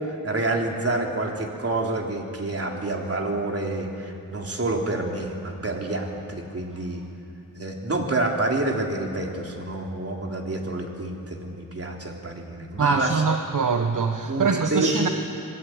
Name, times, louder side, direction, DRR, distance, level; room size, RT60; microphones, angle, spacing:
voice 1, 0.0-7.0 7.6-13.1 14.3-15.1, right 2 dB, 40° right, 1 dB, 3.5 m, -28 dB
voice 2, 12.8-15.1, right 5 dB, 60° right, 5 dB, 1.3 m, -23 dB
26.0 x 19.5 x 9.5 m, 2.8 s
wide cardioid pair, 115°, 36 cm